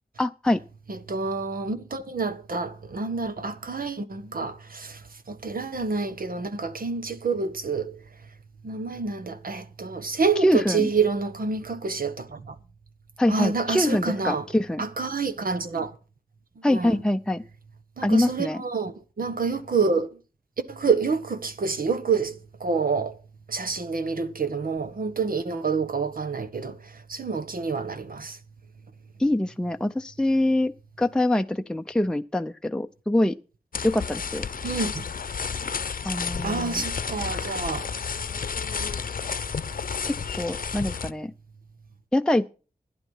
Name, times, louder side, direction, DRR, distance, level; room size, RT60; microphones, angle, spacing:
voice 1, 0.2-0.6 10.4-10.9 13.2-14.8 16.6-17.4 18.0-18.6 29.2-30.7 31.0-33.4 33.8-34.5 36.1-36.8 40.1-41.3 42.1-42.5, left 1 dB, 5° left, 0.6 m, -24 dB
voice 2, 0.9-8.3 8.6-12.6 13.3-14.5 14.8-16.0 16.5-17.0 18.0-20.2 20.7-23.2 23.5-28.4 34.6-35.1 36.4-37.9, right 4 dB, 75° right, 1.4 m, -28 dB
sound 1, 33.7-41.1, left 6 dB, 70° left, 0.7 m, -31 dB
12.5 x 10.5 x 5.6 m
cardioid pair, 55°, 15 cm